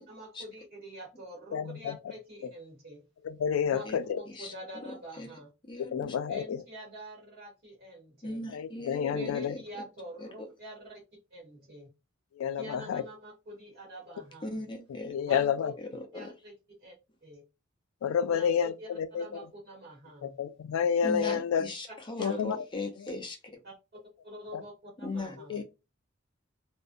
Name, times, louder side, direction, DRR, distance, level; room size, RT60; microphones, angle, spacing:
voice 1, 0.1-3.0 3.7-3.8 4.2-5.5 6.3-8.4 9.0-11.0 11.3-11.9 12.6-14.4 15.3-15.7 16.1-16.5 16.8-16.9 17.2-17.4 18.2-20.4 21.2-21.4 21.9-22.5 23.6-23.7 24.2-25.6, right 1 dB, 55° right, 1.0 m, -46 dB
voice 2, 1.5-2.0 3.2-4.2 5.9-6.6 8.5-9.5 12.4-13.0 15.1-15.7 18.0-19.3 20.2-21.6 22.2-22.6 24.5-24.6, left 7 dB, 85° left, 0.3 m, -29 dB
voice 3, 4.3-5.3 5.7-6.2 8.2-9.8 10.2-10.5 14.4-15.2 15.8-16.3 21.0-23.6 25.0-25.6, left 2 dB, 25° left, 0.5 m, -39 dB
2.5 x 2.0 x 2.5 m
head